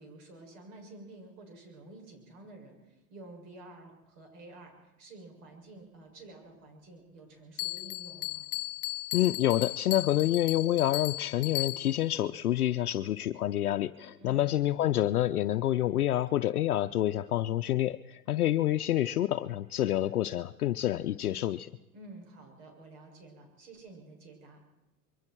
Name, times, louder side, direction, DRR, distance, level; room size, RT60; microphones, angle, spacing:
voice 1, 0.0-8.5 14.2-14.5 21.9-24.6, right 2 dB, 60° right, 2 dB, 7.0 m, -50 dB
Bell, 7.6-12.1, left 19 dB, 40° left, 0.6 m, -36 dB
voice 2, 9.1-21.7, left 13 dB, 90° left, 6 dB, 0.7 m, -28 dB
25.0 x 22.5 x 4.6 m, 1.0 s
hypercardioid pair, 105°, 43 cm